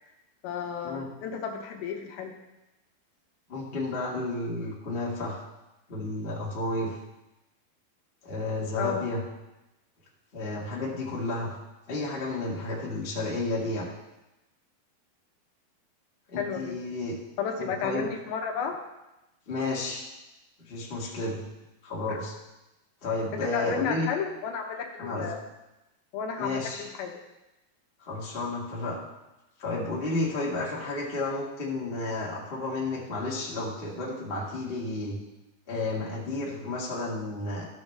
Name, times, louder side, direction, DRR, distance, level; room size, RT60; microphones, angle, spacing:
voice 1, 0.4-2.3 8.8-9.1 16.4-16.7 17.4-18.8 22.1-22.2 23.3-25.4 26.1-27.2, left 7 dB, 75° left, 2 dB, 2.6 m, -32 dB
voice 2, 3.5-5.4 5.9-7.0 8.2-9.2 10.3-11.5 11.9-13.9 16.3-17.1 17.6-18.1 19.5-20.1 20.7-21.4 21.8-22.3 23.0-24.1 25.0-25.3 26.4-26.8 28.0-29.0 29.6-35.2 35.7-37.7, left 2 dB, 40° left, -5 dB, 0.8 m, -32 dB
13.5 x 6.4 x 3.3 m, 0.98 s
omnidirectional pair, 4.6 m